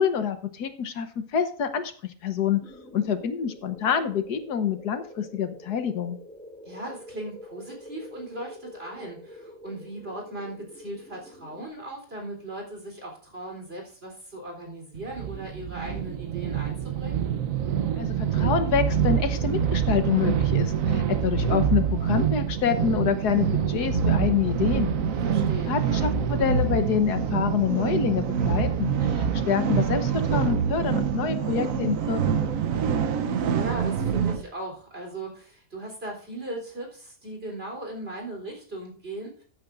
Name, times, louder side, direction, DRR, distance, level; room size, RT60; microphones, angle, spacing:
voice 1, 0.0-2.6 2.9-6.2 18.0-24.9 25.7-32.4, left 7 dB, 80° left, 9 dB, 1.6 m, -27 dB
sound 1, 2.6-11.7, left 1 dB, 5° left, 1.0 m, -46 dB
voice 2, 6.6-17.3 25.2-25.8 33.5-39.4, right 1 dB, 35° right, 1 dB, 4.0 m, -38 dB
sound 2, 14.9-34.4, right 7 dB, 60° right, 1.2 m, -25 dB
14.5 x 8.8 x 2.6 m, 0.43 s
omnidirectional pair, 1.7 m